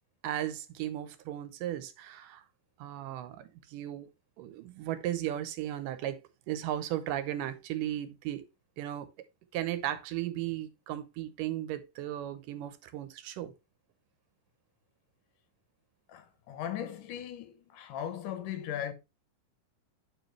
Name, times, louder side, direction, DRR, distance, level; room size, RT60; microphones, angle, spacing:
voice 1, 0.2-2.4 2.8-4.1 4.4-8.5 8.8-9.1 9.5-13.5, right 12 dB, 80° right, 2.4 m, -36 dB
voice 2, 16.1-18.9, left 10 dB, 75° left, 2.6 m, -38 dB
10.5 x 4.8 x 3.2 m
omnidirectional pair, 3.8 m